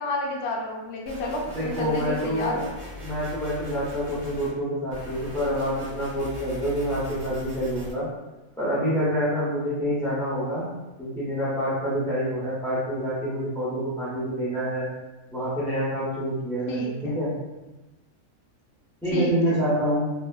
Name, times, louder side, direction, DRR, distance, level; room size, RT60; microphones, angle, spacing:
voice 1, 0.0-2.7 16.7-17.1 19.1-19.5, left 2 dB, 65° left, -1 dB, 0.7 m, -31 dB
sound 1, 1.1-4.5 4.9-7.9, left 1 dB, 40° right, 0.6 m, -40 dB
voice 2, 1.5-2.6 3.0-8.1 8.6-10.7 11.0-14.9 15.3-17.3 19.0-20.1, equal, 5° left, -10 dB, 0.4 m, -27 dB
2.7 x 2.4 x 2.2 m, 1.1 s
omnidirectional pair, 1.4 m